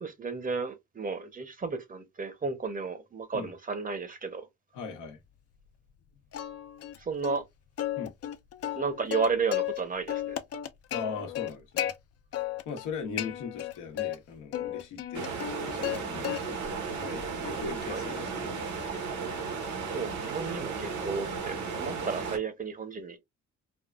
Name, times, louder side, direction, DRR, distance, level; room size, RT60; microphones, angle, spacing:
voice 1, 0.0-4.5 7.0-7.4 8.8-10.4 17.9-18.0 19.9-23.2, right 5 dB, 30° right, 0.8 m, -33 dB
voice 2, 4.7-5.2 8.0-8.1 10.9-11.9 12.7-16.6 16.9-18.7 21.5-22.2, left 5 dB, 85° left, 1.0 m, -39 dB
Plucked string instrument, 6.3-7.0 7.2-7.4 7.8-9.8 10.1-11.9 12.3-12.9 13.2-14.2 14.5-16.7 17.2-21.4, left 12 dB, 55° left, 0.5 m, -35 dB
sound 1, 15.1-22.4, right 5 dB, 70° right, 1.1 m, -35 dB
3.6 x 2.2 x 2.4 m
cardioid pair, 90°, 30 cm